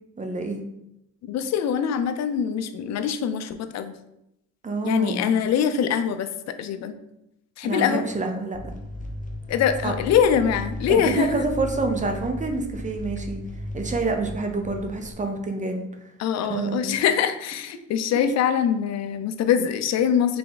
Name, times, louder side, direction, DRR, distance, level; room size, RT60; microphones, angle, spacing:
voice 1, 0.2-0.6 4.6-5.3 7.6-8.6 9.8-9.9 10.9-13.4 13.7-15.8 16.5-16.9, right 3 dB, 25° right, 4 dB, 0.7 m, -27 dB
voice 2, 1.3-3.9 4.8-6.3 6.6-7.0 7.6-8.0 9.5-11.4 16.2-20.4, left 8 dB, 60° left, 9 dB, 0.5 m, -23 dB
sound 1, 8.5-15.1, left 1 dB, 25° left, 0.8 m, -35 dB
3.5 x 3.3 x 4.0 m, 0.83 s
cardioid pair, 90°, 30 cm